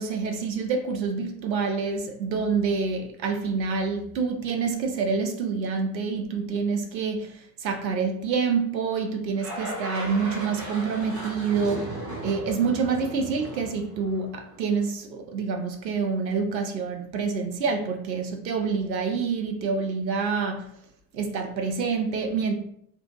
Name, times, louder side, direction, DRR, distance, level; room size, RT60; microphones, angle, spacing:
voice 1, 0.0-11.9 12.2-20.7 21.1-22.6, right 5 dB, 85° right, 0.6 m, -27 dB
sound 1, 9.4-14.7, right 1 dB, 30° right, 1.2 m, -37 dB
3.4 x 2.6 x 2.9 m
figure-of-eight pair, 50°, 50 cm